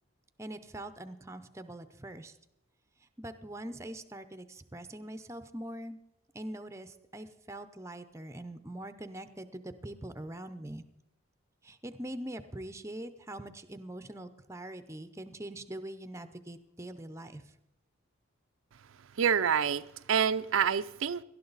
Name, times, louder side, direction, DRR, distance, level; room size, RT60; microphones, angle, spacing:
voice 1, 0.4-2.4 3.2-6.0 6.3-10.8 11.6-17.4, right 1 dB, 15° right, 10 dB, 0.6 m, -43 dB
voice 2, 19.2-21.2, right 7 dB, 70° right, 12 dB, 0.5 m, -27 dB
18.5 x 12.0 x 4.0 m, 0.87 s
head